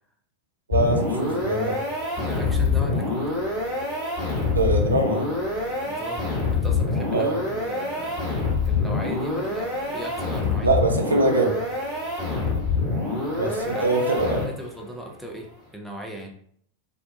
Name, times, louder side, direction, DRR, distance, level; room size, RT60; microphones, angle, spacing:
sound 1, 0.7-14.8, left 3 dB, 30° left, 1.3 m, -26 dB
voice 1, 0.7-1.8 4.5-5.3 7.1-7.4 10.6-11.6 13.4-14.5, right 2 dB, 75° right, 3 dB, 0.5 m, -23 dB
voice 2, 2.2-3.3 5.8-8.3 8.7-10.7 12.2-12.5 13.4-16.3, equal, 5° right, 1 dB, 0.5 m, -37 dB
2.4 x 2.2 x 2.6 m, 0.63 s
figure-of-eight pair, 90°, 0 cm